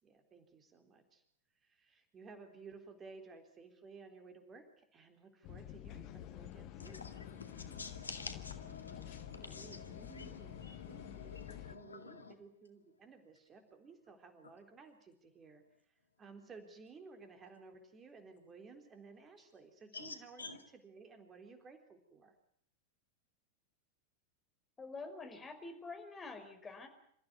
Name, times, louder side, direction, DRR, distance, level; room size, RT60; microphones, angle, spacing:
voice 1, 0.0-1.2 1.5-7.1 9.3-22.3, right 4 dB, 20° right, 3.7 m, -56 dB
sound 1, 5.4-11.8, left 12 dB, 40° left, 1.6 m, -49 dB
voice 2, 6.8-12.4 19.9-20.6, left 4 dB, 75° left, 2.2 m, -49 dB
voice 3, 24.8-26.9, left 3 dB, 15° left, 5.2 m, -47 dB
27.5 x 15.0 x 9.4 m
figure-of-eight pair, 90°, 0 cm